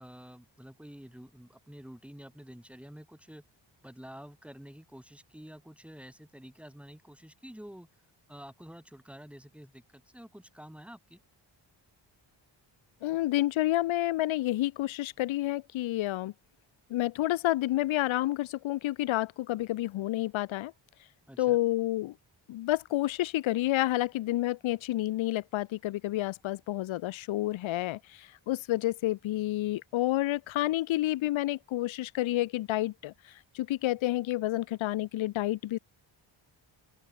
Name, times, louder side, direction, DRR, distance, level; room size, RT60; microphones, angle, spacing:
voice 1, 0.0-3.4 3.8-7.9 8.3-11.2 21.3-21.6, equal, 5° right, 3.9 m, -49 dB
voice 2, 13.0-16.3 16.9-20.7 21.4-22.2 22.5-35.8, left 16 dB, 85° left, 0.5 m, -29 dB
open air
wide cardioid pair, 160°, 46 cm